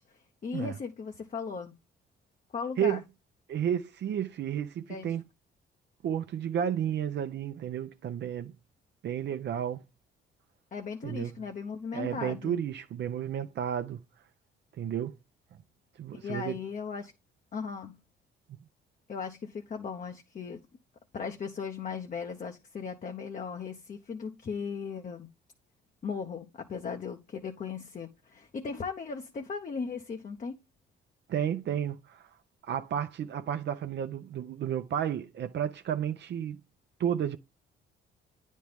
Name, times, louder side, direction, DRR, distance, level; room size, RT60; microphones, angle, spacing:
voice 1, 0.0-1.7 2.5-3.0 4.9-5.2 10.7-12.6 16.1-17.1 17.5-18.0 19.1-20.6 21.1-25.3 26.0-30.6, left 5 dB, 40° left, 0.8 m, -37 dB
voice 2, 3.5-5.2 6.0-8.5 9.0-9.8 11.0-11.3 11.9-14.0 14.8-15.2 16.0-16.6 18.5-18.6 31.3-32.3 32.7-36.6 37.0-37.4, right 9 dB, 60° right, 0.7 m, -32 dB
9.2 x 4.2 x 3.5 m
cardioid pair, 90°, 20 cm